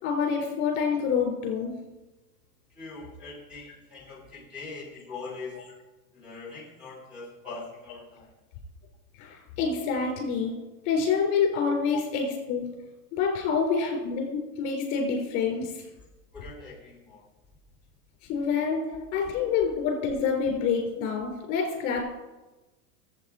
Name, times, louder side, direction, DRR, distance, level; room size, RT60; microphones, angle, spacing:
voice 1, 0.0-1.7 9.2-10.6 10.9-12.7 13.1-15.8 18.3-18.8 19.1-22.0, left 5 dB, 40° left, 1 dB, 3.7 m, -27 dB
voice 2, 2.7-5.6 6.1-8.3 11.9-12.0 13.8-13.9 16.3-17.3 18.9-19.0, left 4 dB, ahead, -5 dB, 3.3 m, -42 dB
12.0 x 8.1 x 4.9 m, 1.1 s
supercardioid pair, 140°, 45 cm